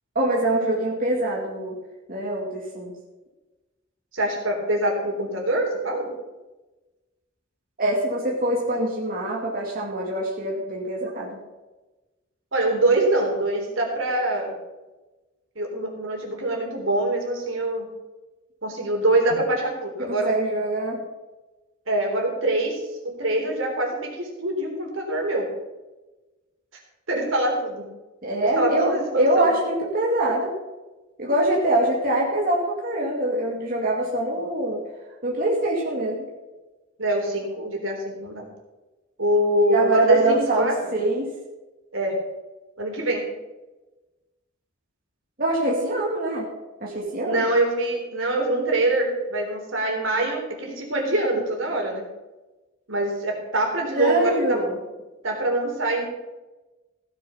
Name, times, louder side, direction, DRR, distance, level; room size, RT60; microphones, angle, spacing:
voice 1, 0.1-1.8 2.1-2.9 7.8-11.4 20.0-21.0 28.2-30.5 31.2-34.8 35.2-36.3 39.7-41.3 45.4-46.5 46.8-47.4 54.0-54.8, right 1 dB, 45° right, -3 dB, 2.4 m, -24 dB
voice 2, 4.1-6.1 12.5-14.5 15.6-17.9 18.6-20.3 21.9-25.5 27.1-27.9 28.4-29.5 37.0-38.5 39.2-40.8 41.9-42.2 42.8-43.2 47.3-52.0 52.9-54.6 55.2-56.0, right 1 dB, 75° right, 1 dB, 3.7 m, -24 dB
16.0 x 7.6 x 5.7 m, 1.1 s
head